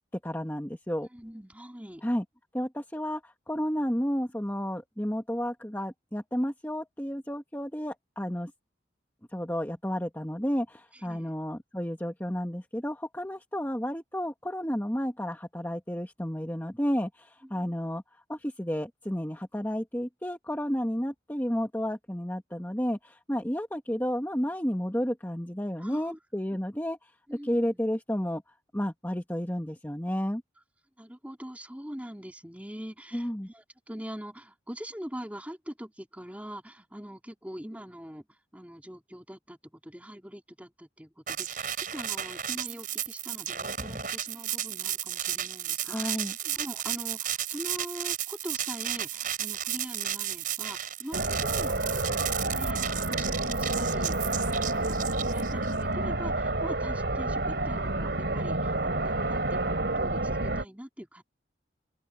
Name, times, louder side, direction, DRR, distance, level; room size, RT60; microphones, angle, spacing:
voice 1, 0.2-1.1 2.0-2.2 2.5-8.5 9.3-27.1 27.4-28.4 28.7-30.4 33.1-33.5 45.8-46.4, equal, 10° left, 1.6 m, -32 dB
voice 2, 1.1-2.1 10.9-11.3 17.4-17.7 25.8-26.2 27.3-27.8 31.0-61.2, equal, 10° right, 3.8 m, -43 dB
sound 1, 41.3-55.7, right 11 dB, 50° right, 6.2 m, -33 dB
sound 2, 51.1-60.6, right 2 dB, 70° right, 3.8 m, -29 dB
open air
head